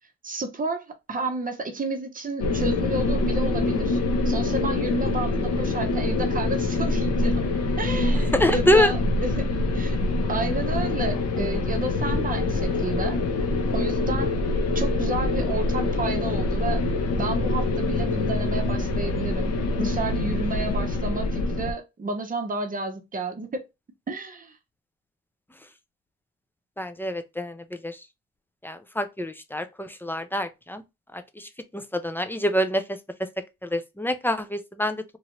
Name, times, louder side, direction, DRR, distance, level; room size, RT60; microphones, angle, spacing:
voice 1, 0.2-7.5 7.8-10.0 10.3-13.2 13.7-14.4 14.7-16.8 17.2-23.6 24.1-24.6, right 3 dB, 30° right, 0.8 m, -31 dB
sound 1, 2.4-21.7, left 2 dB, 55° left, 0.8 m, -25 dB
voice 2, 8.3-8.9 26.8-28.0 28.6-30.8 31.1-33.3 33.6-35.0, left 1 dB, 5° left, 0.4 m, -26 dB
3.0 x 2.4 x 2.9 m
cardioid pair, 90°, 30 cm